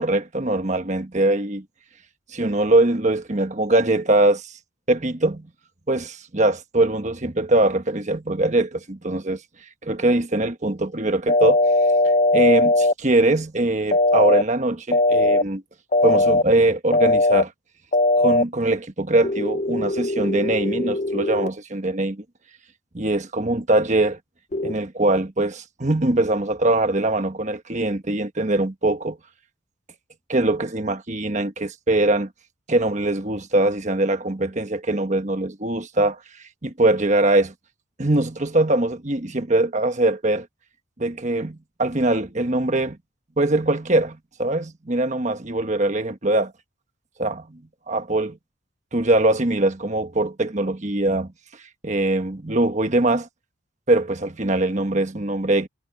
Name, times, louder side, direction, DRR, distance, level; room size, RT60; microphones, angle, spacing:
voice 1, 0.0-1.6 2.3-4.5 4.9-5.5 5.9-9.4 9.8-11.6 12.3-15.6 16.0-17.5 18.2-22.2 22.9-24.2 24.6-29.2 30.3-32.3 32.7-36.2 36.6-37.5 38.0-40.5 41.0-43.0 43.4-46.5 47.2-47.6 47.9-48.4 48.9-51.3 51.8-53.3 53.9-55.7, right 2 dB, 35° right, 1.3 m, -22 dB
sound 1, 11.3-12.9 13.9-14.4 14.9-15.4 15.9-16.4 16.9-17.4 17.9-18.4 19.2-21.5 24.5-24.7, left 2 dB, 35° left, 0.5 m, -19 dB
head